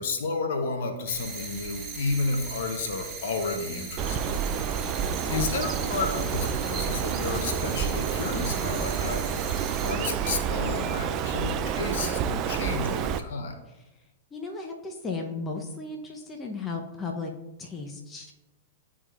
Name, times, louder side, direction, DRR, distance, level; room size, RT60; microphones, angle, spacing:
voice 1, 0.0-4.2 4.5-4.8 5.3-13.6, left 3 dB, 65° left, 5 dB, 0.9 m, -32 dB
sound 1, 1.1-9.9, right 4 dB, 20° right, 1.7 m, -38 dB
Bird, 4.0-13.2, right 8 dB, 40° right, 0.4 m, -29 dB
voice 2, 5.1-5.5 14.3-17.3 17.6-18.3, left 3 dB, 20° left, 1 dB, 0.8 m, -35 dB
11.0 x 3.6 x 2.4 m, 1.0 s
hypercardioid pair, 110°, 0 cm